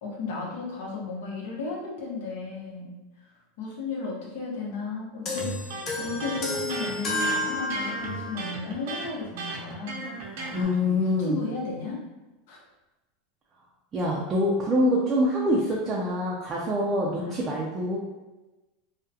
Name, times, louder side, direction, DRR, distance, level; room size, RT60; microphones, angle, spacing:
voice 1, 0.0-2.9 3.6-10.1 10.4-12.0 12.5-12.6 17.2-17.6, left 4 dB, 75° left, -3 dB, 0.8 m, -34 dB
sound 1, 5.3-8.5, left 1 dB, 35° left, 0.5 m, -31 dB
Electric guitar, 5.4-10.6, right 3 dB, 70° right, 0.6 m, -36 dB
voice 2, 10.5-11.4 13.9-18.0, left 1 dB, 25° right, -4 dB, 0.4 m, -25 dB
2.3 x 2.1 x 2.7 m, 1.1 s
supercardioid pair, 135°, 0 cm